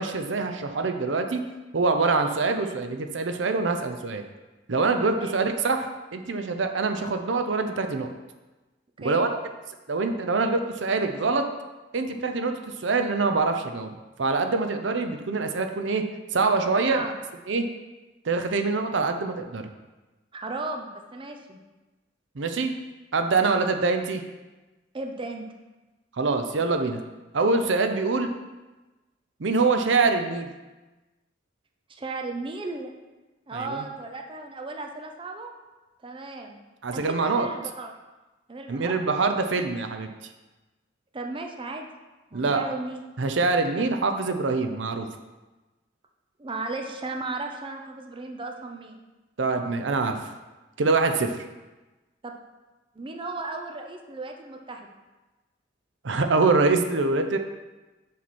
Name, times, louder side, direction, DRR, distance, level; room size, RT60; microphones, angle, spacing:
voice 1, 0.0-1.4 1.7-4.2 4.7-8.1 9.0-9.3 9.9-11.4 11.9-13.9 14.2-16.0 16.3-17.0 17.5-17.6 18.2-19.7 22.4-22.7 23.1-24.2 26.2-27.0 27.3-28.3 29.4-30.5 33.5-33.8 36.8-37.5 38.7-40.1 42.3-42.6 43.2-45.1 49.4-50.3 50.8-51.4 56.0-57.4, right 3 dB, 70° right, 6 dB, 0.6 m, -24 dB
voice 2, 20.3-21.6 23.3-23.6 24.9-25.5 31.9-32.9 33.5-35.5 36.0-36.6 36.9-38.0 38.5-38.9 41.1-41.9 42.3-43.0 43.8-43.9 46.4-49.0 52.2-52.3 53.0-54.9, right 3 dB, 25° right, 3 dB, 0.6 m, -35 dB
7.4 x 5.9 x 4.2 m, 1.1 s
head